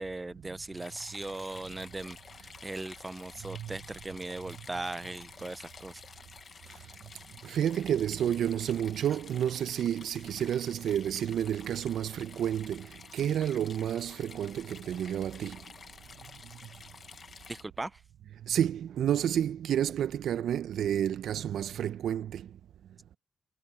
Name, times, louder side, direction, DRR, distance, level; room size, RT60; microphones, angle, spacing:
voice 1, 0.0-2.2 2.6-6.0 17.5-18.0, right 2 dB, 20° right, 0.7 m, -38 dB
sound 1, 0.8-17.6, left 5 dB, 50° left, 1.6 m, -51 dB
voice 2, 3.4-3.8 7.4-15.6 18.4-22.5, right 10 dB, 70° right, 1.0 m, -30 dB
sound 2, 10.8-17.9, right 21 dB, 90° right, 5.4 m, -63 dB
hypercardioid pair, 50°, 0 cm